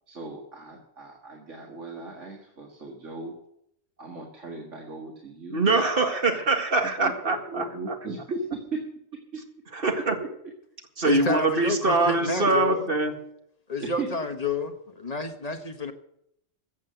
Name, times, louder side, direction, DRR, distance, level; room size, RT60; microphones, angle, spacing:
voice 1, 0.1-3.3 4.0-5.6 6.3-6.4 7.0-8.8 10.2-10.3 13.8-14.1, right 3 dB, 65° right, -1 dB, 2.2 m, -37 dB
voice 2, 5.5-7.6 9.7-10.2 11.0-13.1, right 3 dB, 45° right, 4 dB, 2.1 m, -23 dB
voice 3, 11.0-12.9 13.7-15.9, left 3 dB, 30° left, 6 dB, 1.3 m, -30 dB
15.0 x 7.6 x 7.9 m, 0.75 s
omnidirectional pair, 1.4 m